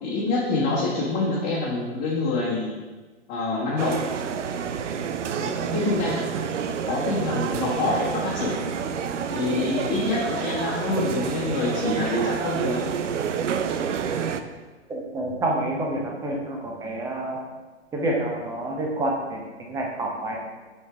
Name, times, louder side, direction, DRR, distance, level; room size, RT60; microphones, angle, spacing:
voice 1, 0.0-2.7 3.3-4.0 5.4-6.2 6.8-8.6 9.3-12.8, left 3 dB, 25° left, -7 dB, 1.3 m, -26 dB
sound 1, 3.8-14.4, right 7 dB, 80° right, 0.6 m, -28 dB
voice 2, 14.9-17.5 17.9-20.5, right 1 dB, 10° right, -1 dB, 0.7 m, -28 dB
8.0 x 4.6 x 3.4 m, 1.3 s
hypercardioid pair, 140°, 36 cm